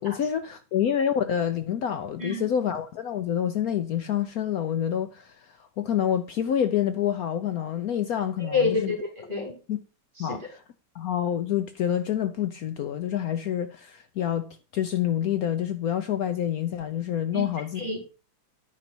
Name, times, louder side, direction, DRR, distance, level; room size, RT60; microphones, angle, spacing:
voice 1, 0.0-8.9 9.7-9.8 10.2-10.6 10.9-17.8, left 9 dB, 85° left, 0.7 m, -27 dB
voice 2, 8.4-9.6 10.2-10.4 17.3-17.5 17.8-18.1, left 3 dB, 20° right, 3.7 m, -28 dB
10.5 x 5.3 x 4.4 m
omnidirectional pair, 2.3 m